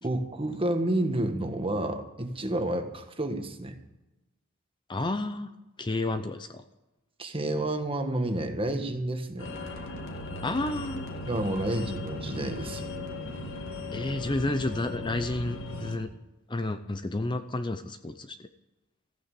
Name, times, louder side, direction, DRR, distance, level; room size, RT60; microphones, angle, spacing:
voice 1, 0.0-3.7 7.2-9.5 11.3-12.9, right 1 dB, 25° right, 6 dB, 1.5 m, -30 dB
voice 2, 4.9-5.5 5.8-6.6 10.4-11.1 13.9-16.1 16.5-18.4, left 2 dB, 20° left, 9 dB, 0.6 m, -31 dB
sound 1, 9.4-16.0, left 2 dB, 60° left, 2.4 m, -37 dB
14.5 x 9.4 x 8.4 m, 1.0 s
head